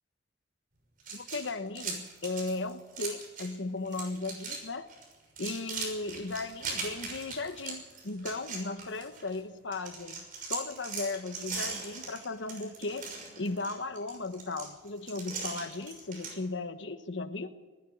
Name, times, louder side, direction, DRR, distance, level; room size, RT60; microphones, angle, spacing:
sound 1, 1.0-3.6 3.8-4.6 4.9-9.4 9.7-16.3, right 4 dB, 45° right, 6.1 m, -40 dB
voice 1, 1.1-4.9 5.4-10.2 10.5-13.1 13.4-17.5, left 3 dB, 75° left, 10 dB, 1.2 m, -36 dB
19.5 x 13.5 x 9.9 m, 1.4 s
head